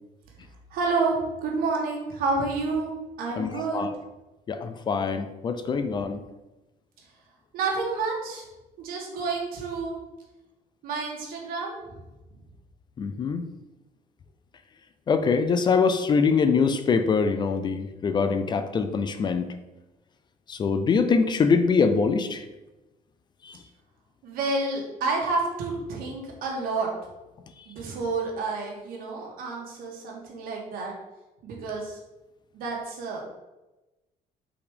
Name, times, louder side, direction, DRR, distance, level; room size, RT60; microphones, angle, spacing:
voice 1, 0.7-3.8 7.0-7.1 7.5-8.5 8.8-10.0 10.8-12.0 24.2-26.9 27.7-30.9 31.4-32.0 32.5-33.2, right 3 dB, 80° right, -1 dB, 1.9 m, -29 dB
voice 2, 3.4-3.9 4.5-6.2 13.0-13.4 15.1-19.5 20.5-22.4 23.5-23.6, left 5 dB, 30° left, 9 dB, 0.4 m, -24 dB
5.8 x 4.2 x 5.0 m, 1.0 s
cardioid pair, 160°, 15 cm